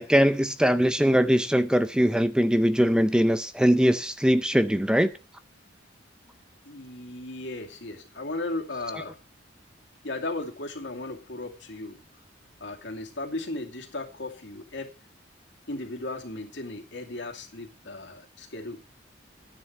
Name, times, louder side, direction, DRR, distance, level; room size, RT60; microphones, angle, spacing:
voice 1, 0.0-5.1, equal, 5° right, 0.5 m, -21 dB
voice 2, 6.6-9.2 10.0-12.0 12.6-14.9 15.7-18.8, left 2 dB, 65° left, 2.4 m, -36 dB
11.5 x 10.0 x 4.5 m
head